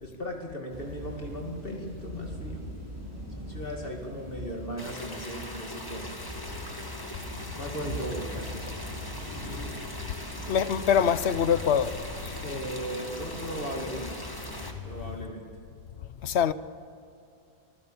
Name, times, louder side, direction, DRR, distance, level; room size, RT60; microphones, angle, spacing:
voice 1, 0.0-2.6 3.4-6.2 7.5-8.7 9.9-10.0 12.4-14.3 14.8-15.5, equal, 60° left, 2.5 m, -37 dB
Thunder / Rain, 0.7-15.2, equal, 75° right, 5.9 m, -42 dB
sound 1, 4.8-14.7, left 1 dB, 20° left, 2.1 m, -40 dB
voice 2, 10.5-12.4 16.2-16.5, left 8 dB, 85° left, 1.0 m, -24 dB
25.5 x 16.0 x 7.1 m
omnidirectional pair, 1.1 m